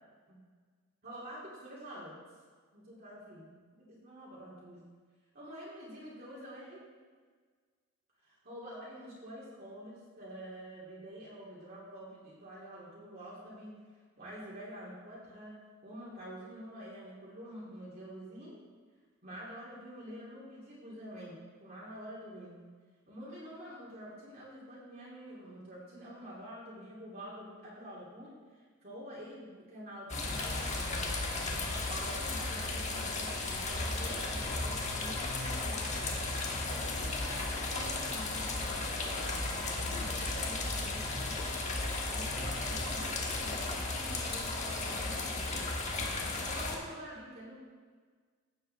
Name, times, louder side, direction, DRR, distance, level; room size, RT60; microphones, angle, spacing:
voice 1, 1.0-2.2 2.7-4.8 5.3-6.8 8.2-13.7 14.2-15.6 15.8-18.6 19.2-22.6 23.1-31.1 31.8-36.1 36.7-41.5 42.0-45.9 46.5-47.6, equal, 40° right, -8 dB, 2.6 m, -47 dB
sound 1, 30.1-46.8, left 2 dB, 30° left, 1.3 m, -35 dB
15.5 x 7.7 x 3.4 m, 1.5 s
head